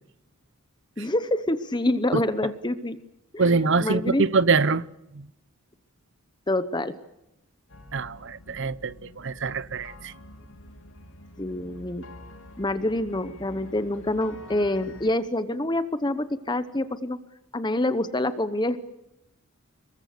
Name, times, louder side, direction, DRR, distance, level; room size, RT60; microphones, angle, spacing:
voice 1, 1.0-3.0 3.3-3.4 3.8-4.2 6.5-6.9 11.4-12.0 12.6-17.2 17.5-18.8, left 1 dB, 20° left, 1.0 m, -26 dB
voice 2, 3.4-4.8 5.1-5.3 7.9-10.1, right 4 dB, 55° right, 0.8 m, -24 dB
sound 1, 7.7-15.1, left 1 dB, 70° left, 3.1 m, -47 dB
26.5 x 22.5 x 6.7 m
head